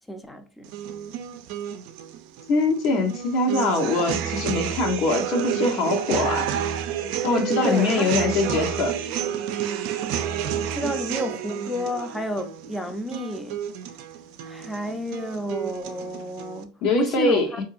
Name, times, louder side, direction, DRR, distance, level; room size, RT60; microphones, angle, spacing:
voice 1, 0.1-0.7 7.6-8.1 10.5-13.6 14.4-17.6, left 1 dB, 10° left, 0.6 m, -31 dB
sound 1, 0.6-16.6, right 9 dB, 65° right, 0.4 m, -30 dB
voice 2, 2.5-6.5 7.2-8.9 16.8-17.5, left 3 dB, 55° left, 1.1 m, -23 dB
3.8 x 2.7 x 2.5 m
supercardioid pair, 110°, 0 cm